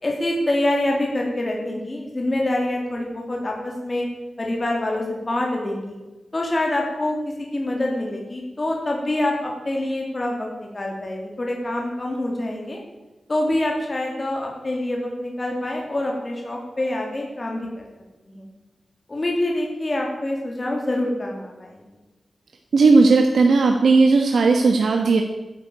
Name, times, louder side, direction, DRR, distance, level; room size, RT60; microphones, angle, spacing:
voice 1, 0.0-4.1 4.4-6.0 6.3-12.8 13.3-17.7 18.3-18.5 19.1-21.9, left 1 dB, 25° left, -1 dB, 3.3 m, -26 dB
voice 2, 22.7-25.2, right 3 dB, 75° right, 3 dB, 1.3 m, -16 dB
13.0 x 11.0 x 8.6 m, 1.1 s
wide cardioid pair, 170°, 0 cm